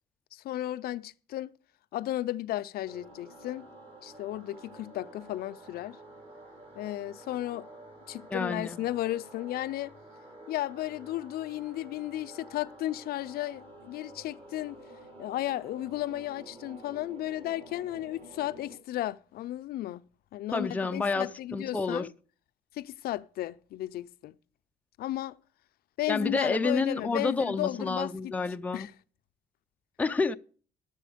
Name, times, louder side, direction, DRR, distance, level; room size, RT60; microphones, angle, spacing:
voice 1, 0.3-1.5 1.9-3.7 4.0-6.0 6.8-7.7 8.1-10.0 10.5-14.8 15.2-20.0 20.3-22.1 22.7-24.4 25.0-25.3 26.0-28.3 28.7-28.9, left 14 dB, 65° left, 0.5 m, -34 dB
sound 1, 2.9-18.8, right 1 dB, 35° right, 3.8 m, -50 dB
voice 2, 8.3-8.8 20.5-22.1 26.1-28.9 30.0-30.4, left 3 dB, 10° left, 0.4 m, -29 dB
12.0 x 6.9 x 5.0 m
cardioid pair, 110°, 17 cm